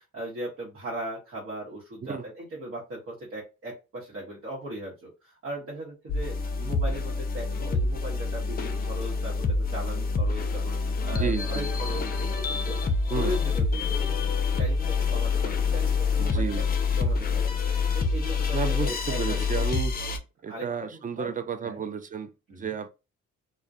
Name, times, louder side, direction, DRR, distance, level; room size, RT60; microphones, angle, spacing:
voice 1, 0.0-12.8 13.1-14.3 14.5-17.6 17.9-19.6 20.4-20.6 20.9-21.4 21.6-21.8 22.5-22.7, right 1 dB, 50° right, 1.0 m, -38 dB
sound 1, 6.1-20.2, left 4 dB, 30° left, 0.5 m, -27 dB
voice 2, 11.1-11.7 13.1-13.3 16.2-16.7 18.5-19.9 20.4-22.9, right 6 dB, 30° right, 0.3 m, -32 dB
2.2 x 2.1 x 2.6 m
cardioid pair, 90°, 30 cm